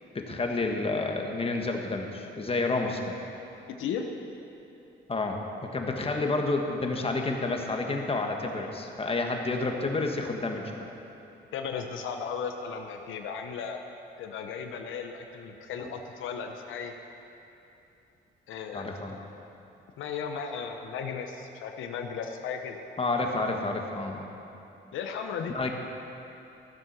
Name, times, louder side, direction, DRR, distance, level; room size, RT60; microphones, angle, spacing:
voice 1, 0.1-3.1 5.1-10.7 15.8-15.9 18.7-19.2 23.0-24.3 25.5-25.7, left 3 dB, 30° left, 2 dB, 1.5 m, -30 dB
voice 2, 11.5-13.8 14.2-16.9 18.5-18.9 20.0-22.8 24.9-25.5, left 6 dB, 80° left, 4 dB, 0.9 m, -35 dB
14.5 x 7.5 x 6.1 m, 2.9 s
cardioid pair, 90°, 20 cm